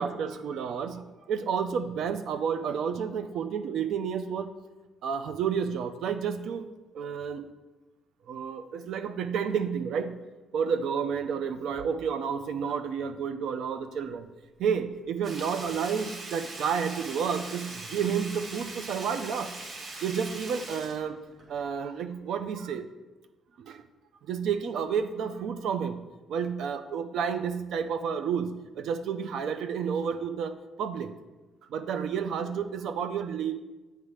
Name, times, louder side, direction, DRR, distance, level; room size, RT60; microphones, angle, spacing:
voice 1, 0.0-4.5 5.0-6.6 6.9-7.5 8.3-10.3 10.5-14.3 14.6-19.6 20.0-21.2 21.5-22.9 23.6-23.8 24.3-31.1 31.7-33.5, right 7 dB, 75° right, 10 dB, 0.5 m, -31 dB
Sink (filling or washing), 15.2-21.8 22.1-22.2, right 2 dB, 45° right, 1.1 m, -41 dB
8.1 x 3.2 x 4.9 m, 1.2 s
cardioid pair, 90°, 0 cm